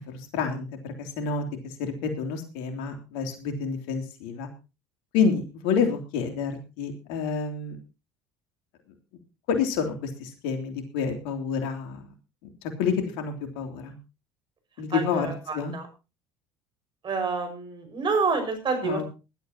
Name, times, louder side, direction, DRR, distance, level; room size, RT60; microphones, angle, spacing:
voice 1, 0.1-4.5 5.1-7.8 9.5-12.0 12.4-14.0 14.8-15.3 15.5-15.8 18.8-19.1, left 6 dB, 70° left, 5 dB, 3.2 m, -29 dB
voice 2, 14.9-15.9 17.0-19.1, right 4 dB, 40° right, 7 dB, 5.9 m, -28 dB
20.0 x 12.0 x 2.9 m, 0.31 s
hypercardioid pair, 65°, 13 cm